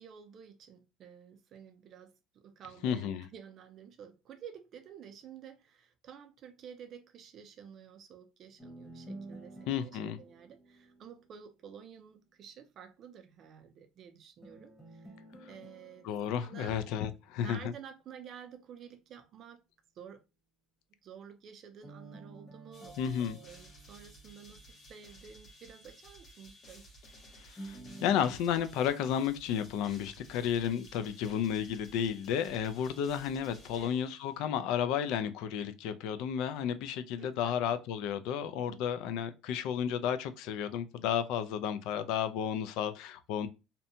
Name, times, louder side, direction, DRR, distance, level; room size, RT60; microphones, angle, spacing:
voice 1, 0.0-15.2 15.5-16.1 16.4-16.8 17.4-19.6 20.0-20.2 21.0-26.9 33.7-33.9 37.2-37.5 38.7-38.8, right 8 dB, 40° right, 0.5 m, -51 dB
voice 2, 2.8-3.3 9.7-10.2 16.0-17.6 23.0-23.4 27.4-43.5, left 8 dB, 70° left, 0.3 m, -32 dB
sound 1, 8.6-11.7 14.4-17.7 21.8-24.9 27.6-28.4, right 2 dB, 15° left, 1.1 m, -51 dB
sound 2, 22.7-34.6, equal, 40° left, 0.9 m, -56 dB
2.6 x 2.1 x 2.6 m
cardioid pair, 140°, 0 cm